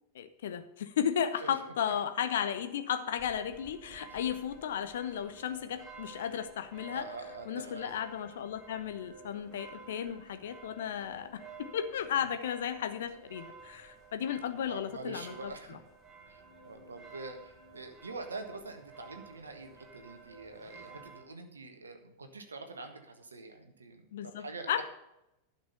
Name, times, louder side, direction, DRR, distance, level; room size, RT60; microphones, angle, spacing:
voice 1, 0.1-7.1 7.5-15.8 24.1-24.8, left 9 dB, 60° left, 9 dB, 1.0 m, -34 dB
sound 1, 3.2-21.2, right 4 dB, 10° right, 3.6 m, -53 dB
voice 2, 6.9-7.9 14.6-15.8 16.2-24.8, right 3 dB, 75° right, 6 dB, 1.6 m, -45 dB
11.5 x 6.0 x 6.8 m, 0.87 s
figure-of-eight pair, 90°, 0 cm